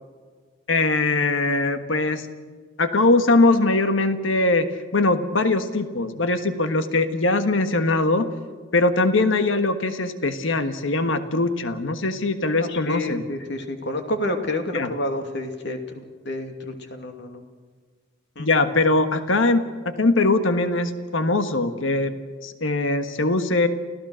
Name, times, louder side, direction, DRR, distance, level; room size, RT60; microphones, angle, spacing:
voice 1, 0.7-2.3 2.8-4.7 4.9-8.3 8.7-13.2 14.7-14.9 18.4-22.1 22.4-23.7, left 2 dB, 85° left, 9 dB, 1.5 m, -21 dB
voice 2, 12.6-17.4 18.4-18.5, left 1 dB, 60° left, 5 dB, 2.6 m, -29 dB
29.0 x 16.0 x 6.4 m, 1.5 s
head